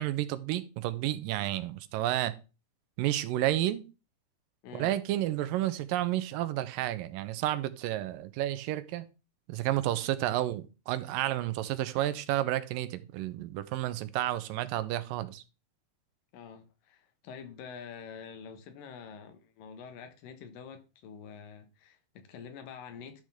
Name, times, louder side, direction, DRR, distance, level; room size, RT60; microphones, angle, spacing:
voice 1, 0.0-2.3 3.0-3.8 4.7-9.1 9.5-15.4, right 14 dB, 85° right, 2.4 m, -31 dB
voice 2, 4.6-5.0 16.3-23.2, left 6 dB, 80° left, 2.8 m, -47 dB
11.5 x 6.3 x 3.5 m
omnidirectional pair, 3.9 m